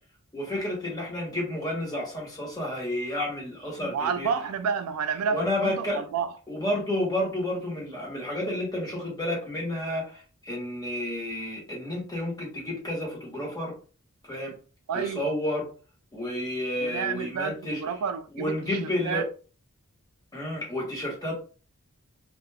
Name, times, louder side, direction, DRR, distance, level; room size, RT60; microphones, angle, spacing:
voice 1, 0.3-4.3 5.3-6.0 6.5-13.7 14.3-14.5 14.9-15.7 16.1-17.8 18.3-19.3 20.3-21.4, left 1 dB, 15° left, 1.1 m, -31 dB
voice 2, 3.9-6.3 14.9-15.2 16.8-19.3, right 6 dB, 70° right, 0.3 m, -30 dB
2.2 x 2.2 x 3.2 m
head